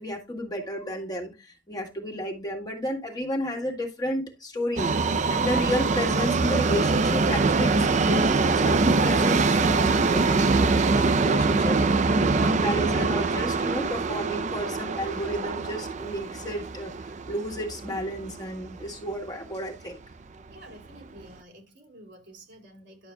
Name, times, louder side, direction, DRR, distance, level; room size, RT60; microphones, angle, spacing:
voice 1, 0.0-20.0, equal, 20° left, 1.7 m, -32 dB
Subway metro underground, 4.8-18.9 19.2-19.3 20.1-20.2 20.5-20.6 21.2-21.3, right 3 dB, 40° right, 0.5 m, -24 dB
voice 2, 20.5-23.1, right 1 dB, 70° right, 2.8 m, -49 dB
11.0 x 6.9 x 2.2 m
head